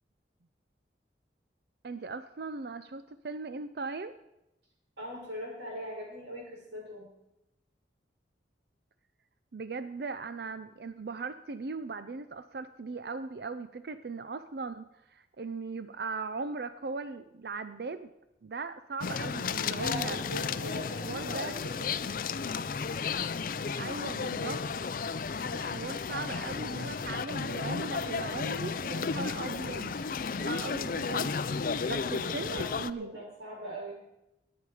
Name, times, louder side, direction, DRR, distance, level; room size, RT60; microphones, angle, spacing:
voice 1, 1.8-4.1 9.5-18.1 18.4-20.2 21.0-21.6 23.8-24.6 25.5-29.9 30.3-31.4 31.9-33.2, right 4 dB, 60° right, 11 dB, 0.5 m, -39 dB
voice 2, 5.0-7.1 19.7-22.0 31.7-34.0, equal, 85° right, -2 dB, 5.9 m, -41 dB
sound 1, 19.0-32.9, left 5 dB, 50° left, 0.4 m, -33 dB
20.0 x 8.4 x 4.9 m, 0.89 s
head